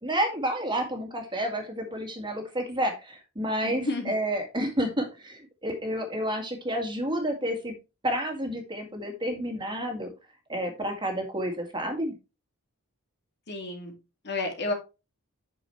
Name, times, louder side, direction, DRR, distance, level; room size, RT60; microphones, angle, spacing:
voice 1, 0.0-7.7 8.0-10.1 10.5-12.1, equal, 20° right, 4 dB, 2.0 m, -30 dB
voice 2, 3.6-4.2 13.5-13.9 14.2-14.7, left 2 dB, 50° left, 4 dB, 2.3 m, -31 dB
8.8 x 6.3 x 3.1 m, 0.27 s
head